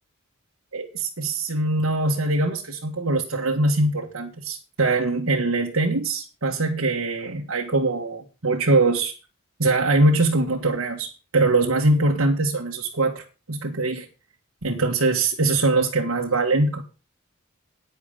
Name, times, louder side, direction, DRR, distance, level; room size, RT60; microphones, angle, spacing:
voice 1, 0.7-9.2 9.6-14.1 14.6-16.8, right 2 dB, 80° right, -1 dB, 1.8 m, -22 dB
9.8 x 9.6 x 5.1 m, 0.32 s
head